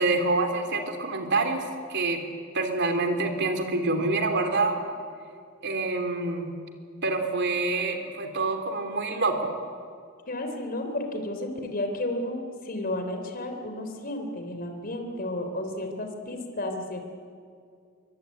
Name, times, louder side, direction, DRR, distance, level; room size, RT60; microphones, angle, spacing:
voice 1, 0.0-2.2 2.5-4.8 5.6-6.5 7.0-9.5, right 3 dB, 55° right, 5 dB, 3.5 m, -26 dB
voice 2, 10.3-17.0, left 1 dB, 45° left, 5 dB, 3.6 m, -32 dB
24.0 x 23.5 x 9.5 m, 2.2 s
head